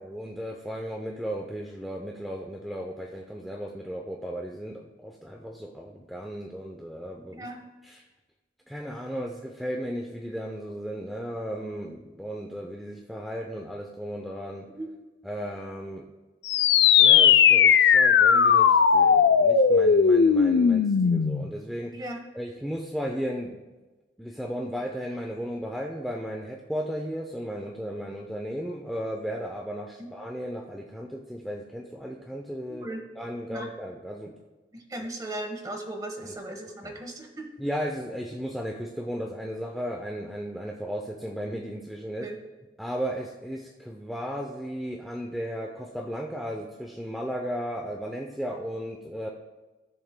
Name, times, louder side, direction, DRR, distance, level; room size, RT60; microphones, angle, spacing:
voice 1, 0.0-7.5 7.8-8.0 8.7-14.7 15.2-16.0 17.0-22.0 22.3-23.6 24.2-32.9 33.2-34.3 35.0-35.1 36.3-36.4 36.8-36.9 37.6-42.3 42.8-49.3, equal, ahead, 0 dB, 0.5 m, -35 dB
sound 1, 16.5-21.5, left 7 dB, 70° left, 0.4 m, -18 dB
voice 2, 32.7-33.0 33.5-33.7 34.7-37.5 42.2-42.4, right 1 dB, 20° right, 3 dB, 1.2 m, -37 dB
16.5 x 6.9 x 2.2 m, 1.2 s
head